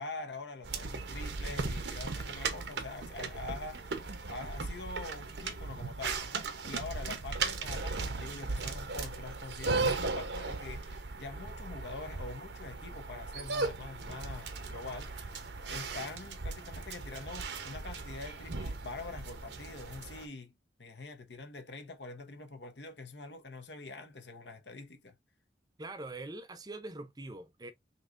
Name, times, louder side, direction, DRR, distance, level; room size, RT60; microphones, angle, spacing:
voice 1, 0.0-6.3 6.6-20.5 20.8-25.1, left 3 dB, 85° left, 1.0 m, -45 dB
sound 1, 0.6-20.2, right 3 dB, 85° right, 0.9 m, -37 dB
voice 2, 25.8-27.7, right 2 dB, 20° right, 0.6 m, -43 dB
5.5 x 2.9 x 2.5 m
head